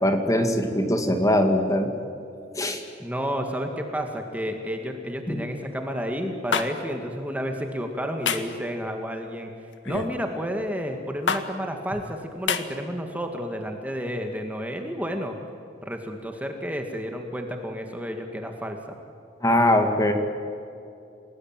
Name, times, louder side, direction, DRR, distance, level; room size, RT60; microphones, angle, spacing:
voice 1, 0.0-1.9 2.5-2.8 5.3-5.4 19.4-20.1, left 1 dB, 20° left, 5 dB, 2.4 m, -21 dB
voice 2, 3.0-9.5 9.9-15.4 15.9-19.0, equal, 10° right, 4 dB, 2.1 m, -31 dB
sound 1, 6.5-6.7 8.3-8.5 9.9-10.2 11.3-11.4 12.5-12.6, left 6 dB, 80° left, 1.8 m, -25 dB
29.5 x 19.5 x 9.1 m, 2.6 s
head